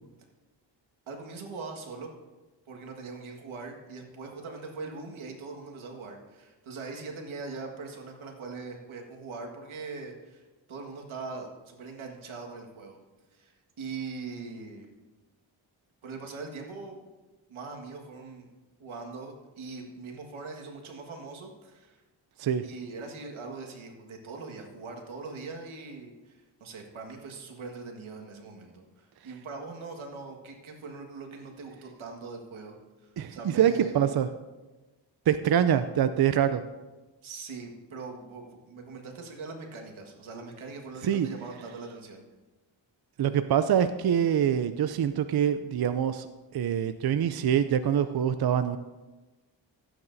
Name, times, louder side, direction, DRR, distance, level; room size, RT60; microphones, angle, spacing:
voice 1, 1.1-2.1 2.7-13.0 13.3-13.5 13.8-14.9 16.0-17.1 17.5-18.5 18.8-22.0 22.6-32.8 33.0-34.1 37.2-42.3, right 4 dB, 85° right, 2 dB, 1.8 m, -41 dB
voice 2, 33.2-34.3 35.3-36.6 41.0-41.3 43.2-46.3 46.5-48.8, right 9 dB, 55° right, 10 dB, 0.6 m, -25 dB
16.0 x 8.9 x 2.7 m, 1.2 s
cardioid pair, 55°, 47 cm